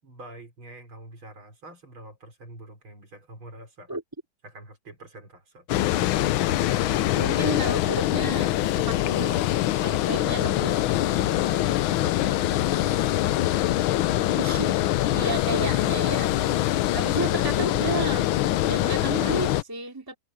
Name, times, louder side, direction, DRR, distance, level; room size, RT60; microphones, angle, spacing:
voice 1, 0.0-3.9 4.4-5.7 10.2-14.0 17.0-17.4, right 1 dB, 70° right, 6.1 m, -45 dB
Water, 5.7-19.6, left 14 dB, 75° left, 1.4 m, -24 dB
voice 2, 7.1-9.5 9.8-10.9 14.4-14.8 15.1-16.4 16.9-18.3 18.6-20.2, right 3 dB, 10° right, 2.7 m, -32 dB
omnidirectional pair, 2.3 m